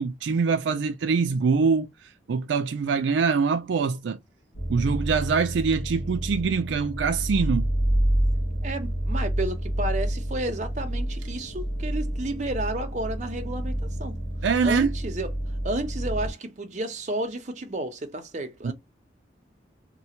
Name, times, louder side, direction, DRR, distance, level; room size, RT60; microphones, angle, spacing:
voice 1, 0.0-1.9 2.3-4.2 4.7-7.7 14.4-14.9 18.6-18.7, right 5 dB, 75° right, 0.4 m, -24 dB
sound 1, 4.5-16.3, right 1 dB, 80° left, 1.2 m, -29 dB
voice 2, 8.6-14.2 14.6-15.3 15.6-18.7, right 2 dB, 40° right, 0.7 m, -32 dB
3.2 x 2.2 x 2.8 m
head